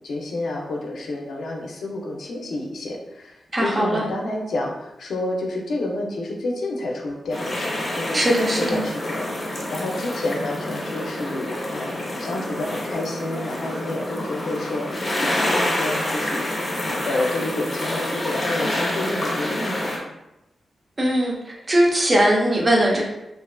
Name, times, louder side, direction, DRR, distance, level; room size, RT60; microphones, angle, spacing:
voice 1, 0.0-8.2 8.5-16.5 16.8-19.9, left 2 dB, 80° left, 0 dB, 0.4 m, -29 dB
voice 2, 3.5-4.0 8.1-8.8 21.0-21.3 21.7-23.0, right 1 dB, 30° right, -2 dB, 0.6 m, -19 dB
sound 1, 7.3-20.0, left 1 dB, 40° left, 0.6 m, -27 dB
2.4 x 2.4 x 2.2 m, 0.91 s
wide cardioid pair, 100°, 0 cm